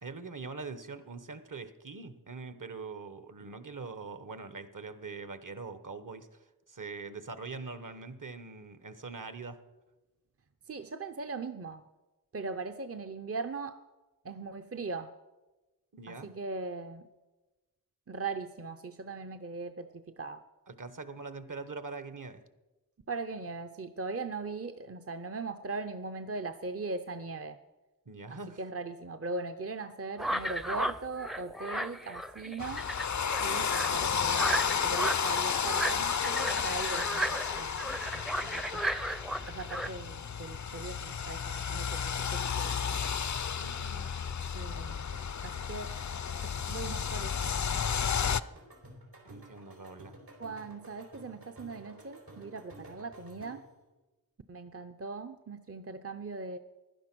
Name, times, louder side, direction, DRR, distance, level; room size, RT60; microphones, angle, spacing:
voice 1, 0.0-9.6 15.9-16.3 20.7-22.4 28.0-28.6 43.6-44.1 49.2-50.2, right 4 dB, 60° right, 11 dB, 1.2 m, -43 dB
voice 2, 10.7-11.8 12.3-13.8 14.2-15.1 16.1-17.1 18.1-20.4 23.1-27.6 28.3-32.9 33.4-38.8 39.5-43.0 44.5-45.1 45.4-45.9 46.4-47.8 50.4-53.6 54.5-56.6, right 3 dB, 40° right, 10 dB, 0.7 m, -40 dB
sound 1, 30.2-39.9, right 1 dB, ahead, 0.5 m, -35 dB
sound 2, 32.6-48.4, left 7 dB, 55° left, 0.5 m, -32 dB
sound 3, 44.3-53.8, right 1 dB, 85° right, 4.2 m, -52 dB
16.0 x 11.0 x 6.1 m, 1.1 s
wide cardioid pair, 50°, 35 cm